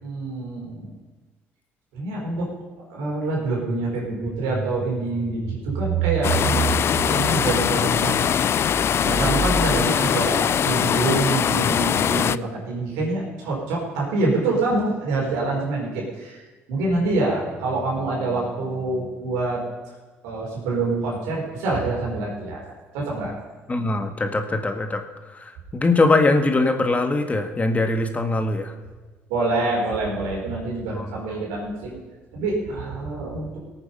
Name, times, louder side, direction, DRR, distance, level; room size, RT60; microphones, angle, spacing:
voice 1, 0.0-0.9 1.9-2.5 2.9-8.3 8.7-8.8 9.0-19.6 20.2-23.3 29.3-32.0 32.3-33.6, right 3 dB, 90° right, -3 dB, 4.6 m, -26 dB
sound 1, 6.2-12.4, left 9 dB, 50° left, 0.4 m, -21 dB
voice 2, 23.7-25.0 25.3-28.7 30.9-31.1, left 2 dB, 25° left, 6 dB, 1.7 m, -22 dB
18.5 x 8.9 x 5.5 m, 1.3 s
supercardioid pair, 75°, 6 cm